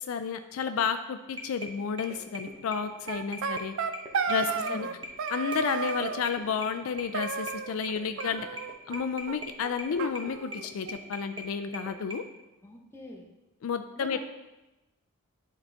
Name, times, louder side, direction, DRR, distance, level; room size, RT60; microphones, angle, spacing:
voice 1, 0.0-3.7 4.3-4.9 5.3-8.5 8.9-12.2 13.6-14.2, left 6 dB, 65° left, 8 dB, 0.4 m, -31 dB
sound 1, 1.3-12.1, equal, 20° right, 0.9 m, -42 dB
sound 2, 3.1-4.9 5.2-6.2 7.1-7.9 8.2-9.0 9.3-9.4 9.6-9.7 10.0-11.0, right 5 dB, 60° right, 0.4 m, -33 dB
voice 2, 4.5-5.0 12.6-13.3 14.0-14.2, left 1 dB, 10° left, 0 dB, 0.9 m, -45 dB
10.5 x 4.0 x 3.4 m, 1.0 s
head